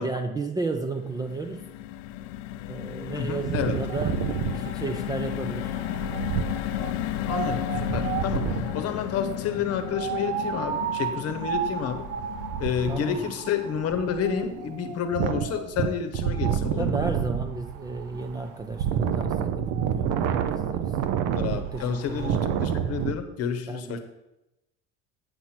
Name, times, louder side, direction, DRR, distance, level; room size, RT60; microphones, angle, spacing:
voice 1, 0.0-1.6 2.7-4.2 4.5-5.7 12.9-13.2 16.8-20.9 21.5-22.4 23.7-24.0, right 3 dB, 10° right, 5 dB, 0.4 m, -33 dB
sound 1, 0.9-17.2 17.6-17.8 18.0-18.3, left 13 dB, 75° left, 0.5 m, -34 dB
voice 2, 3.1-3.8 7.3-12.1 12.6-17.0 21.3-24.0, left 7 dB, 45° left, 9 dB, 1.0 m, -30 dB
Wind, 3.4-8.8 9.9-23.1, right 8 dB, 60° right, 0.7 m, -29 dB
8.6 x 4.4 x 5.9 m, 0.93 s
cardioid pair, 135°, 33 cm